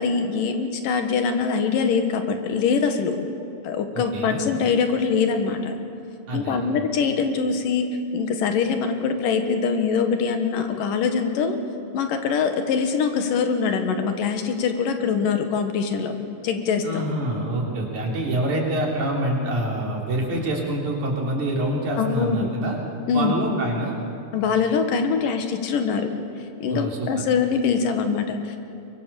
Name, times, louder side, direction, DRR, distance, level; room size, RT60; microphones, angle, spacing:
voice 1, 0.0-3.2 3.6-5.7 6.3-7.9 8.1-11.6 11.9-16.1 16.4-17.0 22.0-22.5 23.1-23.3 24.3-26.1 26.6-28.6, left 5 dB, 80° left, 6 dB, 3.1 m, -23 dB
voice 2, 3.9-4.4 6.3-6.6 16.8-22.8 23.1-24.0 26.7-27.2, right 1 dB, 60° right, -1 dB, 4.8 m, -26 dB
23.5 x 23.0 x 7.0 m, 2.7 s
omnidirectional pair, 3.9 m